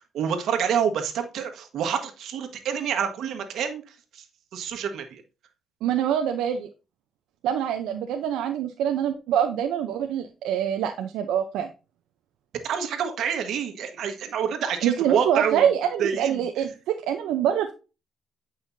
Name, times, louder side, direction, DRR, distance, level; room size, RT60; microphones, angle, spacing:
voice 1, 0.1-4.2 4.5-5.2 12.6-15.7 16.0-16.4, right 7 dB, 75° right, 1.5 m, -27 dB
voice 2, 5.8-6.7 7.4-11.7 14.8-17.7, right 9 dB, 90° right, 0.7 m, -25 dB
9.0 x 5.5 x 2.7 m
cardioid pair, 90°, 0 cm